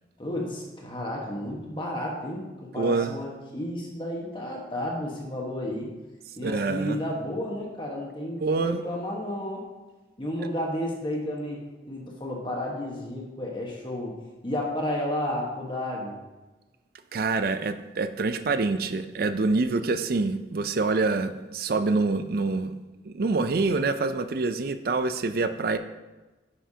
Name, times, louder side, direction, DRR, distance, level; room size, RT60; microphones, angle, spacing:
voice 1, 0.2-5.9 6.4-9.6 10.2-11.6 11.9-14.1 14.4-16.1, left 1 dB, 25° left, -2 dB, 1.3 m, -32 dB
voice 2, 2.8-3.2 6.4-7.0 8.4-8.8 17.1-22.8 23.0-25.8, right 3 dB, 55° right, 10 dB, 0.4 m, -26 dB
9.8 x 5.7 x 2.8 m, 1.2 s
head